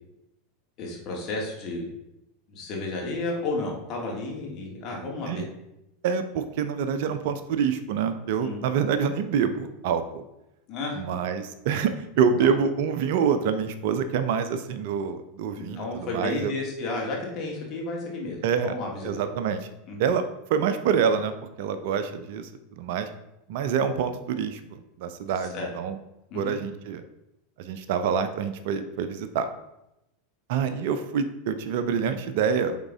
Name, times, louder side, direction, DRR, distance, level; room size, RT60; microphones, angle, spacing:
voice 1, 0.8-1.8 2.5-5.5 8.4-8.6 10.7-11.0 12.4-12.5 15.6-19.1 19.9-20.0 25.5-25.7 26.3-26.5, left 2 dB, 45° left, -1 dB, 2.1 m, -32 dB
voice 2, 6.0-10.2 11.0-16.5 18.4-18.8 19.0-19.7 20.0-20.2 20.5-22.5 22.8-23.1 23.5-26.0 26.3-27.0 27.6-29.5 30.5-32.8, right 7 dB, 60° right, 10 dB, 0.5 m, -26 dB
8.7 x 3.7 x 3.6 m, 0.88 s
figure-of-eight pair, 85°, 0 cm